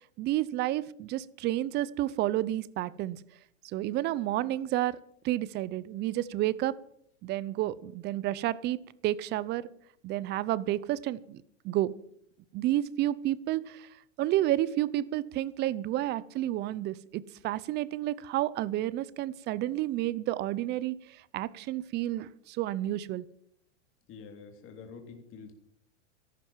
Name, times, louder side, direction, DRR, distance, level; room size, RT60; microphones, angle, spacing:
voice 1, 0.2-3.2 3.6-5.0 5.2-6.7 7.2-8.8 9.0-9.7 10.0-11.4 11.6-11.9 12.5-13.9 14.2-23.2, right 14 dB, 30° right, 20 dB, 0.6 m, -30 dB
voice 2, 24.1-25.5, left 5 dB, 35° left, 4 dB, 3.4 m, -47 dB
14.0 x 12.0 x 7.3 m, 0.69 s
hypercardioid pair, 130°, 37 cm